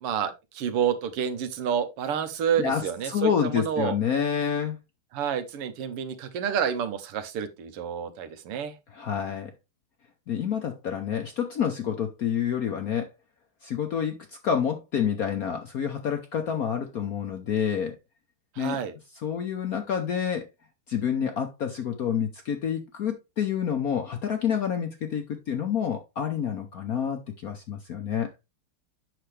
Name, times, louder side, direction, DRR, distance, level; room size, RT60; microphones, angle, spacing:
voice 1, 0.0-3.9 5.1-8.8 18.6-18.9, right 8 dB, 90° right, 1.9 m, -29 dB
voice 2, 2.6-4.8 8.9-9.5 10.3-13.1 13.6-18.0 18.6-18.8 19.2-20.5 20.9-28.3, left 8 dB, 65° left, 0.9 m, -28 dB
7.8 x 6.0 x 3.2 m
omnidirectional pair, 2.4 m